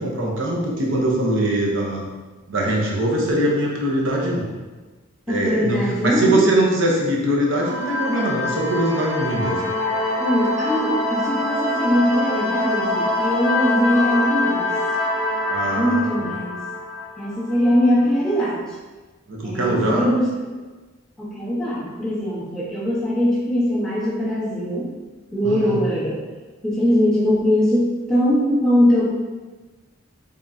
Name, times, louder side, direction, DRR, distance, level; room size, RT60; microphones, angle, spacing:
voice 1, 0.0-2.1 2.5-4.5 5.3-9.6 15.5-16.3 19.3-20.1 25.4-25.8, right 1 dB, 65° right, -2 dB, 0.8 m, -22 dB
voice 2, 5.3-6.4 10.2-14.7 15.7-16.6 17.2-18.6 19.4-20.3 21.2-25.0 25.3-26.2 26.6-29.2, equal, 5° left, -8 dB, 1.1 m, -21 dB
sound 1, 7.5-17.9, left 2 dB, 25° right, 1.3 m, -24 dB
3.7 x 3.5 x 2.7 m, 1.3 s
head